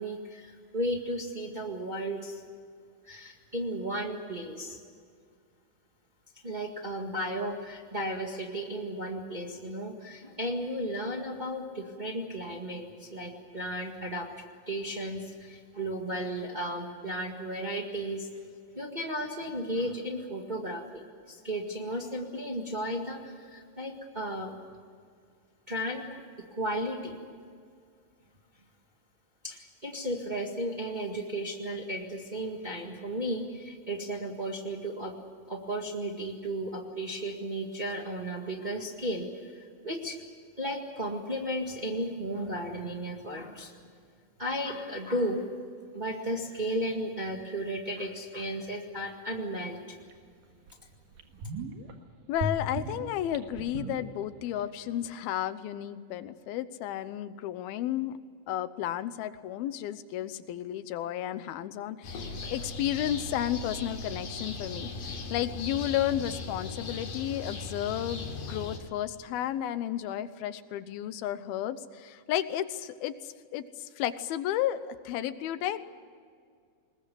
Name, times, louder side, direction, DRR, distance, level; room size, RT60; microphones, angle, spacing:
voice 1, 0.0-2.4 3.0-4.8 6.4-14.3 14.7-18.3 18.7-24.5 25.7-26.1 26.5-27.2 29.4-35.1 35.5-40.2 40.6-43.7 44.4-45.5 45.9-49.8, right 1 dB, 45° right, 1 dB, 0.5 m, -34 dB
sound 1, 50.1-50.2 50.7-50.8 51.1-51.9 52.4-54.6 54.9-55.0, right 1 dB, 65° right, 3.1 m, -36 dB
voice 2, 52.3-58.1 58.5-64.9 65.3-75.8, left 11 dB, 90° left, 13 dB, 2.8 m, -32 dB
sound 2, 62.0-68.8, left 3 dB, 60° left, 4.3 m, -38 dB
21.0 x 21.0 x 9.3 m, 2.1 s
omnidirectional pair, 4.3 m